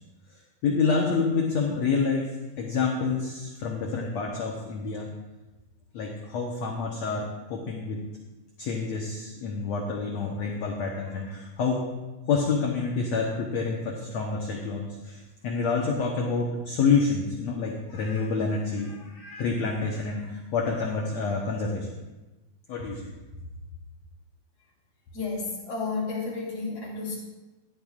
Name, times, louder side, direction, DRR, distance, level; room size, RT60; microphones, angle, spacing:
voice 1, 0.3-2.3 2.6-5.1 5.9-8.0 8.6-11.8 12.3-21.9 22.7-23.1, left 4 dB, 65° left, -1 dB, 1.8 m, -28 dB
voice 2, 25.1-27.2, left 4 dB, 45° left, -7 dB, 4.9 m, -32 dB
16.0 x 11.5 x 2.5 m, 1.1 s
omnidirectional pair, 4.3 m